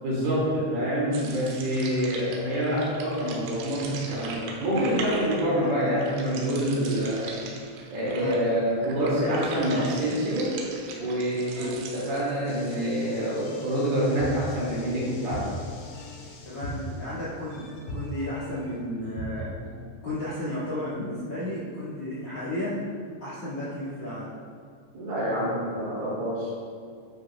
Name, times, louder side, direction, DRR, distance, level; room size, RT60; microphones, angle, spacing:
voice 1, 0.0-7.3 7.9-10.5 11.0-15.5 24.9-26.5, equal, 55° right, -7 dB, 4.0 m, -26 dB
sound 1, 1.1-12.8, right 4 dB, 85° right, 3.7 m, -40 dB
voice 2, 8.0-8.4 9.3-9.9 11.4-11.8 16.4-19.5 20.0-22.8 23.2-24.3, left 1 dB, 40° left, -10 dB, 2.3 m, -33 dB
sound 2, 12.5-19.9, left 1 dB, 70° left, 4.6 m, -39 dB
12.5 x 9.6 x 2.4 m, 2.2 s
omnidirectional pair, 5.7 m